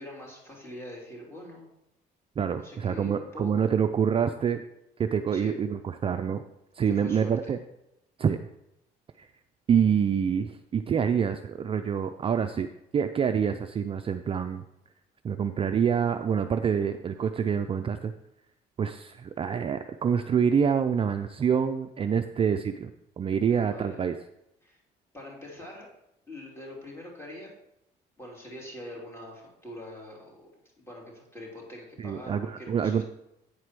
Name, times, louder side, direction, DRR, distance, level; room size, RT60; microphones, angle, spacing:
voice 1, 0.0-1.7 2.6-3.7 5.3-5.5 6.8-7.5 23.4-24.0 24.6-24.8 25.1-25.9 26.3-27.5 28.2-30.5 30.8-33.0, left 1 dB, 15° left, -2 dB, 3.2 m, -44 dB
voice 2, 2.4-4.6 5.0-6.4 6.8-7.6 8.2-8.4 9.2-9.3 9.7-14.6 15.2-18.1 18.8-22.9 23.2-24.1 32.0-33.0, right 7 dB, 35° right, 8 dB, 0.4 m, -26 dB
8.8 x 4.8 x 6.0 m, 0.84 s
cardioid pair, 110°, 17 cm